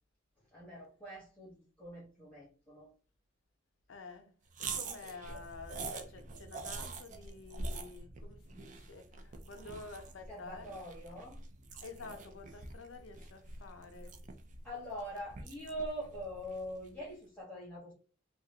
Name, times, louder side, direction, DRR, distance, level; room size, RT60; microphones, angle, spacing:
voice 1, 0.5-2.9 10.3-11.4 14.6-17.9, equal, 5° left, 1.2 m, -43 dB
voice 2, 3.9-4.3 4.6-10.7 11.8-14.2, left 3 dB, 85° left, 0.6 m, -50 dB
sound 1, 4.5-17.0, right 3 dB, 40° right, 0.4 m, -45 dB
2.9 x 2.4 x 2.9 m
head